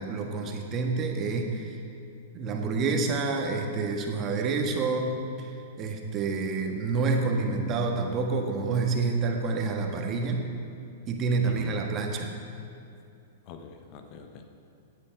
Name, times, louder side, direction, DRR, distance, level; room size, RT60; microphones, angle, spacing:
voice 1, 0.0-1.8 2.3-10.5 11.1-12.4, right 4 dB, 30° right, 3 dB, 1.6 m, -28 dB
voice 2, 11.4-11.9 13.4-14.5, left 6 dB, 40° left, 6 dB, 1.0 m, -43 dB
17.5 x 8.5 x 4.8 m, 2.6 s
figure-of-eight pair, 105°, 0 cm